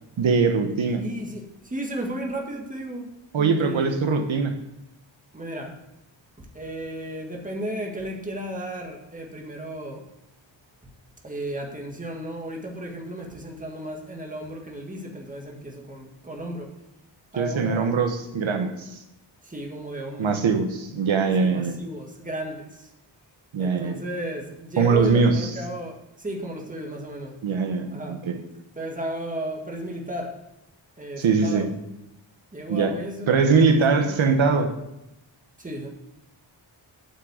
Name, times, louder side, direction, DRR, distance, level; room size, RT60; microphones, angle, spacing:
voice 1, 0.2-1.0 3.3-4.6 17.4-19.0 20.2-21.8 23.5-24.0 24.8-25.5 27.4-28.4 31.2-31.7 32.7-32.9 33.3-34.7, right 5 dB, 80° right, 6 dB, 1.2 m, -22 dB
voice 2, 1.0-3.1 3.4-4.0 5.3-5.8 6.4-10.1 11.2-16.8 17.3-18.0 19.4-20.4 21.4-22.9 23.6-27.4 27.9-28.2 28.8-30.4 31.0-31.7 32.5-33.5 33.9-34.2 35.6-35.9, right 1 dB, 15° right, 1 dB, 1.8 m, -34 dB
8.4 x 6.3 x 8.1 m, 0.88 s
wide cardioid pair, 140°, 46 cm